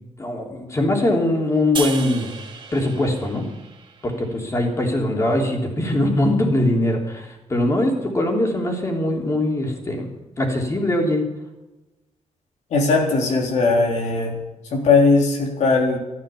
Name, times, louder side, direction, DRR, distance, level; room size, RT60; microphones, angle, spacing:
voice 1, 0.2-2.3 2.7-3.5 4.0-11.2, left 1 dB, 25° left, 1 dB, 3.3 m, -22 dB
sound 1, 1.8-5.0, right 5 dB, 40° right, 1.8 m, -35 dB
voice 2, 12.7-14.4 14.7-16.0, left 3 dB, 80° left, 1 dB, 3.6 m, -18 dB
13.5 x 12.0 x 7.1 m, 1.0 s
wide cardioid pair, 145°, 12 cm